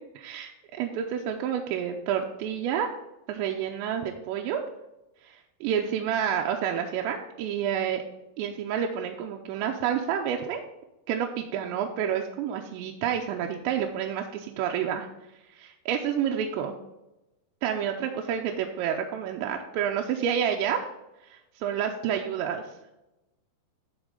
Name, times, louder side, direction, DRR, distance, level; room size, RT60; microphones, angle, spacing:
voice 1, 0.2-2.9 3.3-4.6 5.3-5.4 5.6-8.0 8.4-10.6 11.1-15.1 15.5-16.7 17.6-20.9 21.3-22.6, right 8 dB, 80° right, 2 dB, 2.7 m, -29 dB
12.0 x 4.3 x 3.7 m, 0.97 s
omnidirectional pair, 5.4 m